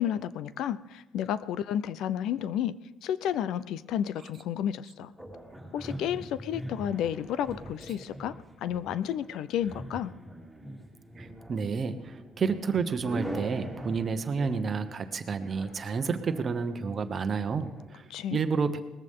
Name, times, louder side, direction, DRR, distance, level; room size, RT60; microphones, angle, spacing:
voice 1, 0.0-2.7 3.0-5.1 5.7-8.3 8.6-10.1 18.1-18.4, left 10 dB, 70° left, 16 dB, 0.5 m, -31 dB
sound 1, 5.2-17.9, right 1 dB, ahead, 3.2 m, -43 dB
voice 2, 11.2-18.8, right 5 dB, 30° right, 9 dB, 1.0 m, -30 dB
19.5 x 14.5 x 3.7 m, 1.2 s
cardioid pair, 155°, 0 cm